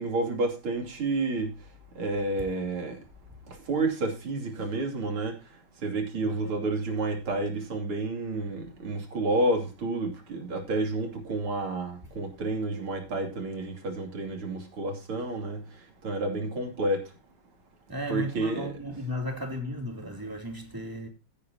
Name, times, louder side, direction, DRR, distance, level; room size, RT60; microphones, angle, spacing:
voice 1, 0.0-1.5 2.0-3.0 3.7-5.3 5.8-15.6 16.0-17.0 18.1-18.7, right 2 dB, 80° right, 3.6 m, -30 dB
voice 2, 6.2-6.7 17.9-21.1, equal, 10° right, 2.7 m, -35 dB
16.0 x 8.7 x 2.8 m
omnidirectional pair, 2.3 m